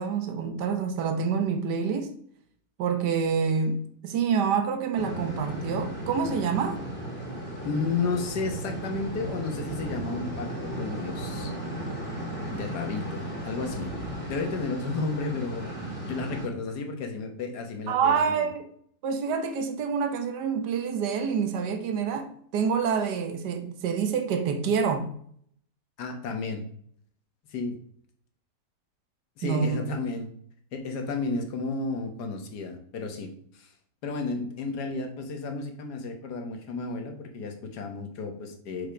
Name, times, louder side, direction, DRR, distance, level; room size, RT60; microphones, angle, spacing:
voice 1, 0.0-2.1 2.8-6.8 17.9-18.7 19.0-25.1 29.4-29.8, right 6 dB, 80° right, 6 dB, 1.5 m, -27 dB
sound 1, 4.9-16.5, right 1 dB, 5° left, 2.2 m, -35 dB
voice 2, 7.6-11.5 12.5-13.9 14.3-15.8 16.0-18.5 26.0-26.7 27.5-27.8 29.4-30.3 30.7-33.7 34.0-38.9, left 3 dB, 75° left, 5 dB, 1.7 m, -32 dB
6.0 x 5.1 x 5.1 m, 0.62 s
omnidirectional pair, 1.8 m